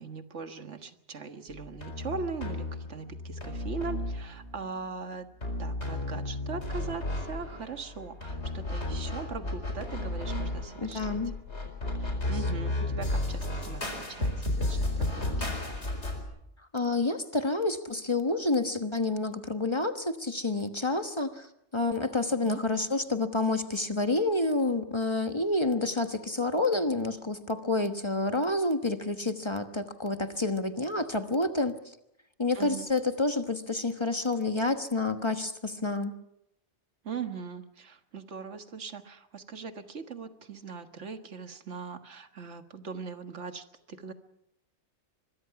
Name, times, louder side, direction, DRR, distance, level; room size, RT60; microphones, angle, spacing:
voice 1, 0.0-5.3 5.6-11.2 12.0-15.6 22.4-22.6 32.5-32.9 37.0-44.1, right 5 dB, 90° right, 8 dB, 1.8 m, -40 dB
sound 1, 1.5-4.6 5.4-16.2, left 2 dB, 70° left, 4.8 m, -33 dB
voice 2, 10.8-11.3 16.7-21.5 21.7-31.8 32.4-36.1, left 2 dB, 25° left, 8 dB, 1.3 m, -29 dB
24.5 x 22.0 x 5.9 m, 0.79 s
omnidirectional pair, 1.2 m